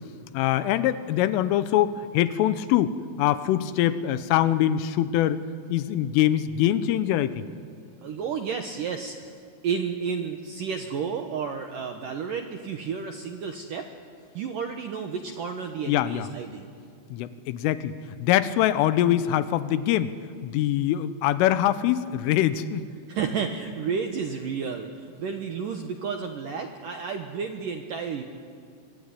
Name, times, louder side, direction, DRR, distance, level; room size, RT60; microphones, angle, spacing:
voice 1, 0.3-5.4 5.7-7.4 15.9-16.3 17.1-20.1 20.4-22.9, left 12 dB, 85° left, 13 dB, 3.5 m, -23 dB
voice 2, 8.0-9.3 9.6-13.9 14.3-16.7 23.1-28.2, right 6 dB, 70° right, 5 dB, 2.1 m, -31 dB
24.5 x 24.5 x 9.8 m, 2.3 s
omnidirectional pair, 5.7 m